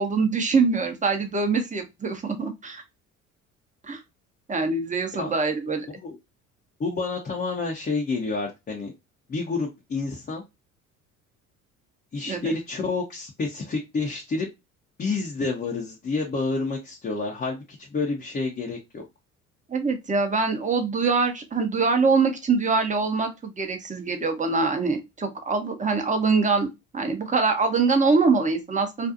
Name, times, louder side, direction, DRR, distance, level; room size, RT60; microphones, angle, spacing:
voice 1, 0.0-2.8 3.8-4.0 4.5-5.9 12.3-12.5 19.7-26.7 26.9-29.1, right 4 dB, 20° right, 5 dB, 0.8 m, -24 dB
voice 2, 6.8-8.9 9.3-10.4 12.1-14.5 15.0-19.0, left 3 dB, 20° left, -1 dB, 0.7 m, -29 dB
2.5 x 2.3 x 2.6 m, 0.23 s
hypercardioid pair, 55°, 41 cm